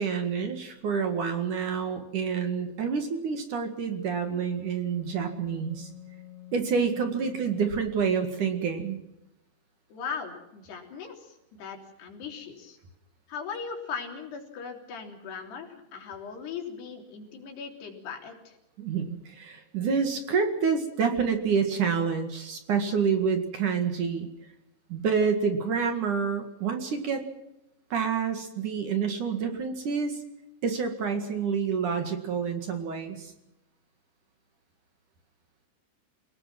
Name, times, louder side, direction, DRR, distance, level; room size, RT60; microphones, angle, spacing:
voice 1, 0.0-5.9 6.5-9.0 18.8-24.3 24.9-27.2 27.9-30.2 30.6-33.3, right 6 dB, 55° right, 6 dB, 3.1 m, -28 dB
Wind instrument woodwind instrument, 4.4-8.9, left 14 dB, 75° right, 5.7 m, -48 dB
voice 2, 9.9-12.8 13.3-18.6, left 6 dB, 70° left, 2 dB, 5.5 m, -39 dB
29.0 x 18.5 x 6.1 m, 0.90 s
omnidirectional pair, 4.9 m